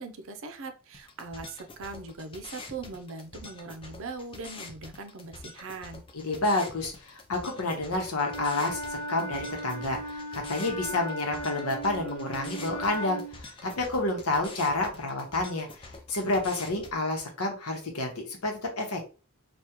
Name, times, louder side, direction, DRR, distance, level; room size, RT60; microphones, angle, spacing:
voice 1, 0.0-6.0, right 3 dB, 65° right, 7 dB, 0.5 m, -40 dB
sound 1, 0.9-16.9, left 3 dB, 25° left, 0.5 m, -46 dB
voice 2, 6.1-19.0, left 2 dB, 85° left, 2 dB, 1.0 m, -30 dB
Wind instrument woodwind instrument, 8.2-13.4, right 1 dB, 65° left, 0.9 m, -37 dB
3.5 x 2.3 x 2.9 m, 0.34 s
head